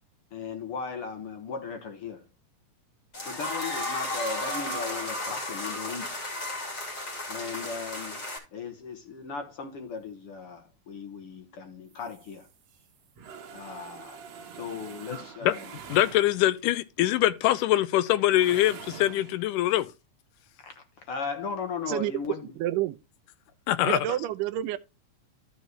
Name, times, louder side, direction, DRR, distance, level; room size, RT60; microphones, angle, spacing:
voice 1, 0.3-2.2 3.3-6.2 7.3-8.2 8.5-12.5 13.5-14.2 14.5-15.6 20.6-22.5, left 5 dB, 55° left, 1.9 m, -37 dB
sound 1, 3.1-8.4, left 1 dB, 25° left, 2.7 m, -34 dB
sound 2, 11.9-16.7 18.2-19.4, right 7 dB, 60° right, 2.2 m, -45 dB
voice 2, 15.9-19.9 23.7-24.0, left 14 dB, 80° left, 2.1 m, -23 dB
voice 3, 22.6-23.0 23.8-24.8, right 13 dB, 80° right, 2.1 m, -28 dB
13.0 x 5.5 x 3.0 m
omnidirectional pair, 3.8 m